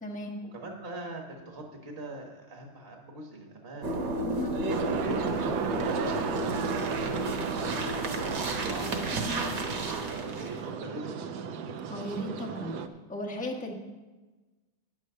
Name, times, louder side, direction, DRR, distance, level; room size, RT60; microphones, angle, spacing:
voice 1, 0.0-0.4 4.2-4.5 9.1-9.4 11.9-12.8 13.1-13.7, equal, 10° left, -1 dB, 0.4 m, -35 dB
voice 2, 0.5-3.9 4.3-4.4 5.0-9.5 9.8-11.5, right 2 dB, 35° right, 1 dB, 1.1 m, -42 dB
sound 1, 3.8-10.6, right 2 dB, 60° right, 1.6 m, -32 dB
sound 2, 4.7-12.9, right 6 dB, 85° right, 0.9 m, -35 dB
9.8 x 6.3 x 6.6 m, 1.2 s
omnidirectional pair, 2.3 m